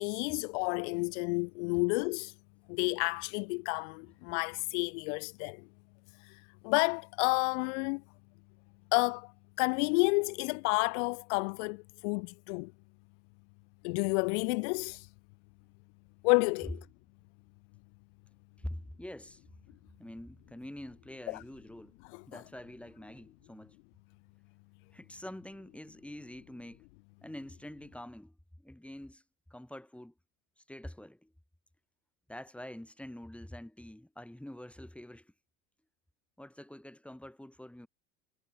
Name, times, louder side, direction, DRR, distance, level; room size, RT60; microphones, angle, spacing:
voice 1, 0.0-2.3 2.7-5.6 6.2-8.0 8.9-9.3 9.6-12.7 13.8-15.1 16.2-16.9 21.3-21.4 22.1-22.4, left 34 dB, 60° left, 0.5 m, -30 dB
voice 2, 18.6-19.4 20.0-21.9 22.3-23.8 24.9-26.9 27.2-28.4 28.6-29.2 29.5-30.1 30.6-31.3 32.3-35.3 36.4-37.9, left 1 dB, 5° left, 6.2 m, -46 dB
hypercardioid pair, 90°, 41 cm